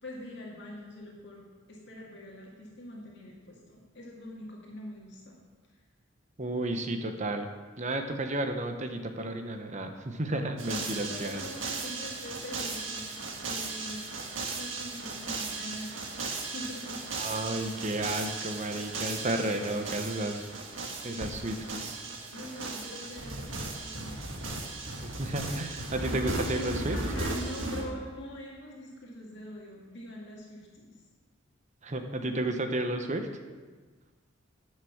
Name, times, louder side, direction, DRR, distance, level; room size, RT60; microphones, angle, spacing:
voice 1, 0.0-5.4 10.7-10.8 11.1-13.1 13.4-14.1 14.5-17.0 19.4-19.7 22.3-24.2 26.3-31.0, left 1 dB, 60° left, -3 dB, 2.1 m, -43 dB
voice 2, 6.4-7.5 7.8-11.4 17.2-20.5 21.0-22.0 25.0-27.0 31.8-33.3, right 1 dB, 35° right, 6 dB, 0.9 m, -32 dB
sound 1, 10.6-27.9, right 3 dB, 75° right, 1.7 m, -36 dB
10.5 x 6.6 x 7.2 m, 1.4 s
head